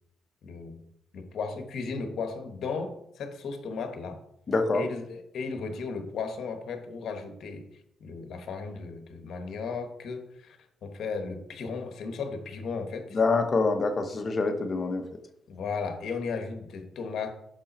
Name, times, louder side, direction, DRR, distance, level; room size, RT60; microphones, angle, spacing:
voice 1, 0.4-0.8 1.1-4.2 4.7-7.7 8.0-13.2 15.5-17.3, left 4 dB, 65° left, 6 dB, 1.1 m, -35 dB
voice 2, 4.5-4.8 13.1-15.0, left 3 dB, 40° left, 7 dB, 0.9 m, -25 dB
6.0 x 5.4 x 4.2 m, 0.76 s
cardioid pair, 90°, 0 cm